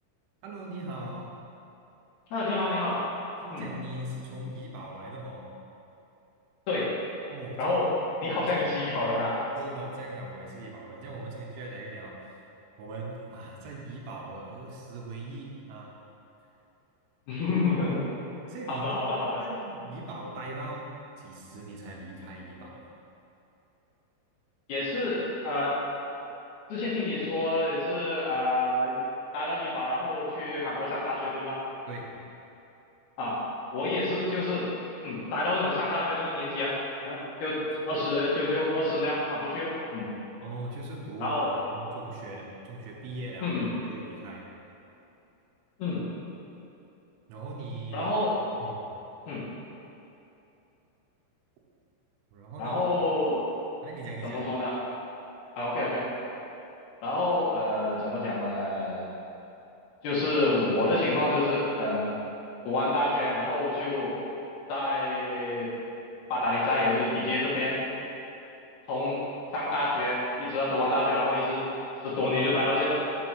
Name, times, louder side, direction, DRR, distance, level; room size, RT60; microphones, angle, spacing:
voice 1, 0.4-1.3 3.4-5.5 7.3-7.8 8.3-8.7 9.6-12.4 12.8-15.9 18.5-22.8 31.9-32.1 37.9-38.0 40.4-43.6 43.8-44.5 47.3-48.1 48.6-48.9 52.3-52.8 53.8-54.4, right 2 dB, 90° right, -2 dB, 3.7 m, -40 dB
voice 2, 2.3-3.0 3.5-3.6 6.7-6.9 7.6-7.9 8.2-9.4 17.3-18.0 18.7-19.4 24.7-25.8 26.7-29.0 29.3-31.6 33.2-33.4 33.7-34.7 35.0-36.7 37.0-40.1 41.2-41.5 43.4-43.7 45.8-46.0 47.9-48.4 49.3-49.4 52.6-53.4 54.2-54.8 55.6-56.1 57.0-59.1 60.0-62.1 62.6-64.1 64.7-65.7 66.3-67.8 68.9-69.2 69.5-71.6 72.0-72.9, left 2 dB, 65° left, -8 dB, 2.9 m, -28 dB
6.8 x 5.9 x 6.2 m, 2.9 s
omnidirectional pair, 5.5 m